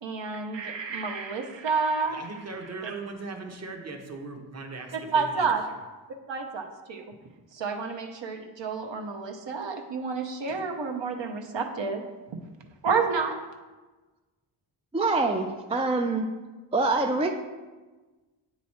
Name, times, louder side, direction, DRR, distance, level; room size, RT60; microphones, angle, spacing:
voice 1, 0.0-2.2 2.8-2.9 4.9-5.6 6.3-7.0 7.5-12.0 12.8-13.4, right 5 dB, 60° right, 3 dB, 0.8 m, -29 dB
voice 2, 2.1-5.5, right 3 dB, 30° right, 3 dB, 0.9 m, -39 dB
voice 3, 14.9-16.3 16.7-17.3, right 3 dB, 15° right, 4 dB, 0.3 m, -25 dB
8.4 x 3.1 x 4.2 m, 1.2 s
wide cardioid pair, 85°, 49 cm